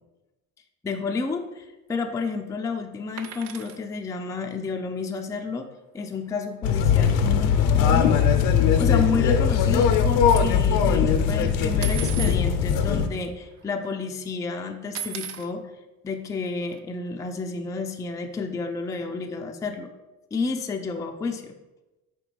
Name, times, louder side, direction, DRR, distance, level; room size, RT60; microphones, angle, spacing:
voice 1, 0.8-5.7 5.9-8.2 8.8-15.7 16.0-19.9 20.3-21.5, left 4 dB, 10° left, 4 dB, 0.3 m, -31 dB
sound 1, 3.2-3.8 6.0-6.1 6.3-6.5 6.8-6.9 7.7-7.8 8.3-10.4 11.8-12.4 13.2-13.3 13.5-14.0 14.9-15.5 16.7-16.8, right 10 dB, 65° right, 0.6 m, -37 dB
sound 2, 6.6-13.1, left 7 dB, 70° left, 0.6 m, -20 dB
5.0 x 3.3 x 3.0 m, 1.1 s
hypercardioid pair, 60°, 46 cm